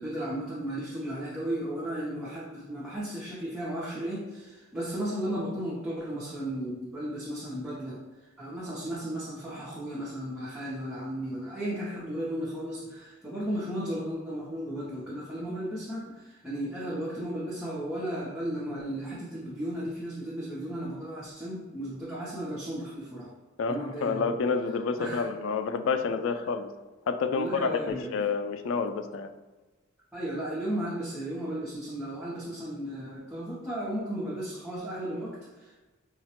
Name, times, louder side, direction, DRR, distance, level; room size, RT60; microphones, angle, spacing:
voice 1, 0.0-23.3 23.7-24.3 25.0-25.3 27.3-28.2 30.1-35.8, right 1 dB, 5° right, -8 dB, 0.5 m, -35 dB
voice 2, 23.6-26.7 27.1-29.3, left 5 dB, 75° left, 8 dB, 0.3 m, -29 dB
4.7 x 2.1 x 2.9 m, 1.2 s
head